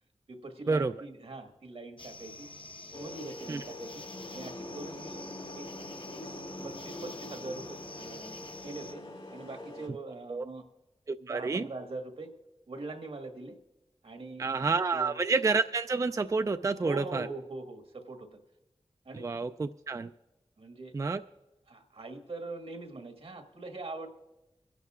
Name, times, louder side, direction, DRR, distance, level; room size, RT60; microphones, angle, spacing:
voice 1, 0.3-2.5 2.9-4.0 4.3-5.2 5.5-5.7 6.1-8.4 8.6-9.0 9.3-10.6 11.2-12.3 12.7-13.6 14.0-14.6 14.9-15.1 16.8-18.4 19.0-19.2 20.6-20.9 21.7-24.1, right 2 dB, 80° right, 4 dB, 1.5 m, -42 dB
sound 1, 2.0-8.9, left 2 dB, 60° left, 1.0 m, -47 dB
sound 2, 2.9-9.9, left 1 dB, 80° left, 3.8 m, -44 dB
voice 2, 11.1-11.7 14.4-17.3 19.1-20.1 20.9-21.2, right 4 dB, 35° right, 9 dB, 0.3 m, -29 dB
25.0 x 11.0 x 2.4 m, 1.0 s
cardioid pair, 45°, 10 cm